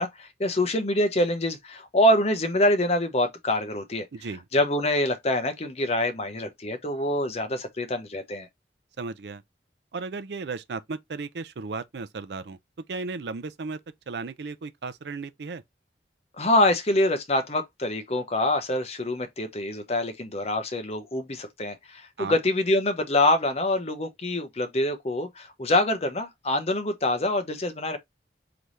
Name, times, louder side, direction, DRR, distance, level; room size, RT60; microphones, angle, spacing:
voice 1, 0.0-4.1 4.5-8.5 16.4-28.0, left 1 dB, 35° left, 0.8 m, -25 dB
voice 2, 4.1-4.4 9.0-9.4 9.9-12.6 12.9-13.8 14.1-15.6 22.2-22.4, right 4 dB, 70° right, 0.5 m, -35 dB
4.0 x 3.4 x 3.1 m
head